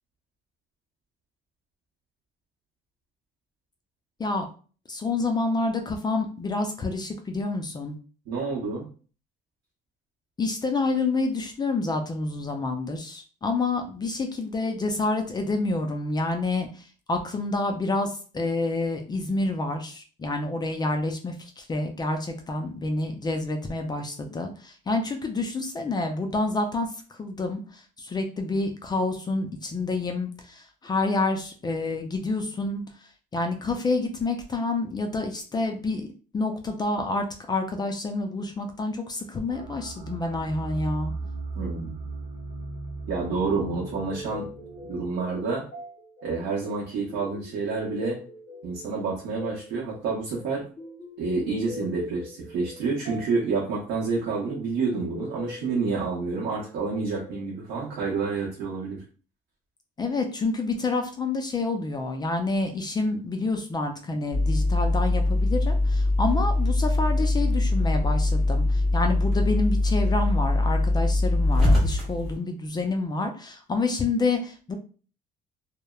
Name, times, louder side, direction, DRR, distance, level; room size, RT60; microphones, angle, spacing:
voice 1, 4.9-8.0 10.4-26.9 27.2-32.8 33.3-36.1 36.3-41.1 60.0-74.8, left 3 dB, 25° left, 4 dB, 0.4 m, -28 dB
voice 2, 8.3-8.9 41.6-42.0 43.1-44.5 44.9-45.6 46.2-48.2 48.6-50.6 51.2-59.0, right 4 dB, 80° right, -4 dB, 0.8 m, -28 dB
sound 1, 39.5-45.1, right 3 dB, 35° right, 0.6 m, -37 dB
sound 2, 43.4-58.2, left 1 dB, 55° left, 0.9 m, -43 dB
sound 3, 64.3-72.4, left 2 dB, ahead, 1.4 m, -22 dB
2.8 x 2.0 x 2.3 m, 0.38 s
cardioid pair, 110°, 17 cm